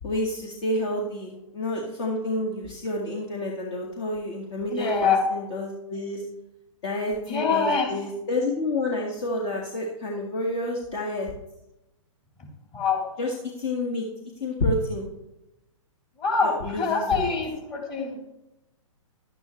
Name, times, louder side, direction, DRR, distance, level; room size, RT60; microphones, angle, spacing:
voice 1, 0.0-6.2 6.8-11.3 13.2-14.1 14.4-15.1 16.4-17.3, left 1 dB, 55° left, -1 dB, 1.9 m, -29 dB
voice 2, 4.7-5.2 7.2-8.0 12.7-13.1 16.2-18.2, left 5 dB, 35° left, -1 dB, 3.8 m, -25 dB
11.5 x 9.8 x 3.2 m, 0.90 s
hypercardioid pair, 130°, 17 cm